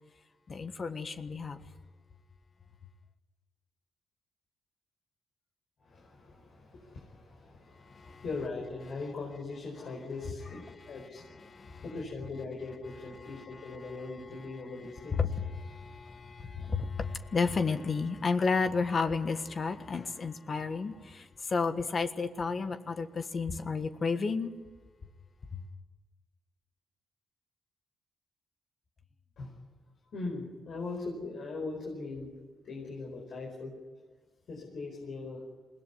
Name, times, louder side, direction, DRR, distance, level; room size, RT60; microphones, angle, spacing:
voice 1, 0.5-1.6 7.8-8.2 11.2-11.8 13.1-14.0 14.2-14.6 15.1-24.5 25.5-25.6, left 4 dB, 50° left, 1.4 m, -32 dB
voice 2, 5.8-15.2 29.4-29.5 30.1-32.3 32.6-33.7 34.5-35.4, left 3 dB, 65° left, 4.9 m, -40 dB
21.5 x 18.0 x 9.5 m
cardioid pair, 65°, 0 cm